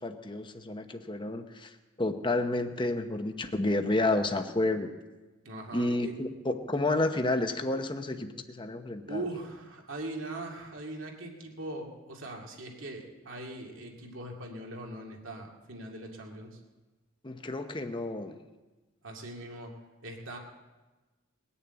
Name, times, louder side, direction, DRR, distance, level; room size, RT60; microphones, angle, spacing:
voice 1, 0.0-4.9 5.7-9.2 17.2-18.4, left 2 dB, 25° left, 6 dB, 0.9 m, -30 dB
voice 2, 5.4-6.2 9.1-16.6 19.0-19.7 20.0-20.4, right 1 dB, 70° right, 0 dB, 2.4 m, -40 dB
20.5 x 7.0 x 8.9 m, 1.2 s
head